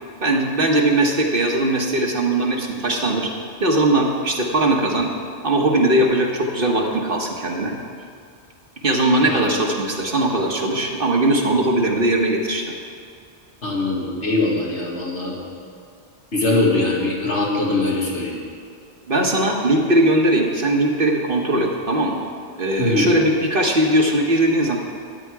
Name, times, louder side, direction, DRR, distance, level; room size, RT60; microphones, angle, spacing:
voice 1, 0.2-3.3 3.6-5.1 5.4-7.7 8.8-12.6 19.1-22.3 22.6-24.8, right 1 dB, 50° right, 1 dB, 1.4 m, -19 dB
voice 2, 9.3-9.6 13.6-15.4 16.3-18.4 22.8-23.1, left 2 dB, 75° left, -4 dB, 2.5 m, -22 dB
13.0 x 9.8 x 4.8 m, 2.3 s
omnidirectional pair, 1.2 m